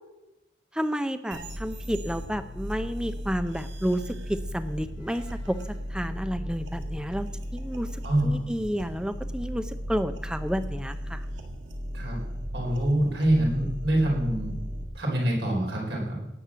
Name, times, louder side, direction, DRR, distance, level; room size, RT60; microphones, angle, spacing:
voice 1, 0.7-5.6 5.9-11.3, equal, 5° right, 10 dB, 0.6 m, -31 dB
sound 1, 1.3-14.8, equal, 85° right, 1.9 m, -36 dB
voice 2, 8.0-8.4 11.9-12.2 12.5-14.5 14.9-16.2, right 1 dB, 70° right, -2 dB, 4.4 m, -25 dB
18.0 x 6.6 x 7.5 m, 0.95 s
head